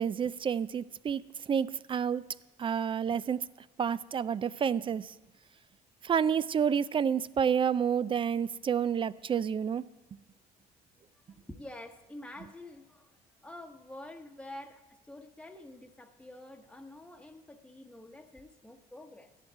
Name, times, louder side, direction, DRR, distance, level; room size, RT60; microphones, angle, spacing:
voice 1, 0.0-2.2 2.6-3.5 3.8-5.1 6.0-9.8, right 7 dB, 30° right, 0.4 m, -29 dB
voice 2, 11.3-13.1 13.4-19.3, left 1 dB, 5° left, 1.0 m, -48 dB
13.0 x 10.5 x 4.6 m
cardioid pair, 110°, 17 cm